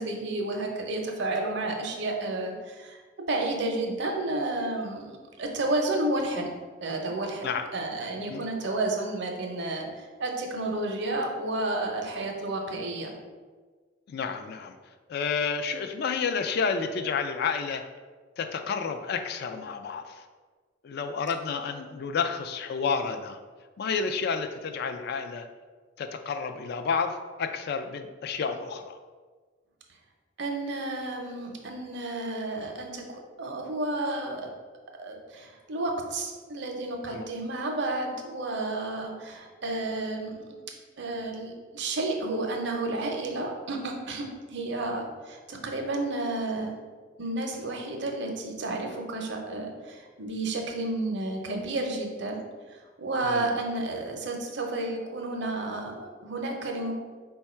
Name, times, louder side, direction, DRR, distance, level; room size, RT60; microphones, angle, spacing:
voice 1, 0.0-3.0 3.3-6.5 6.8-13.1 30.4-34.5 35.0-40.7 41.0-46.7 47.2-52.4 52.7-56.9, right 2 dB, 60° right, 2 dB, 0.6 m, -31 dB
voice 2, 14.1-14.8 15.1-17.8 18.4-20.2 20.8-23.4 23.8-25.5 26.0-29.0 37.1-37.3 53.2-53.5, left 5 dB, 55° left, 7 dB, 0.3 m, -30 dB
4.4 x 2.3 x 4.2 m, 1.4 s
head